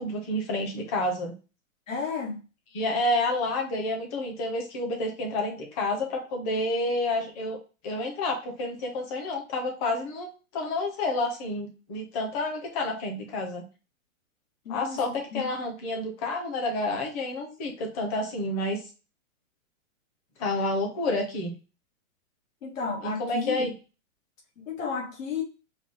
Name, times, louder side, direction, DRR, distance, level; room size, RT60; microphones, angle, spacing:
voice 1, 0.0-1.3 2.7-7.6 7.8-13.6 14.7-18.8 20.4-21.5 23.0-23.7, left 2 dB, 30° left, 2 dB, 1.1 m, -29 dB
voice 2, 1.9-2.4 14.7-15.0 15.3-15.5 22.6-23.7 24.6-25.4, left 5 dB, 75° left, -3 dB, 2.0 m, -32 dB
4.8 x 2.4 x 3.8 m, 0.33 s
hypercardioid pair, 165°, 40 cm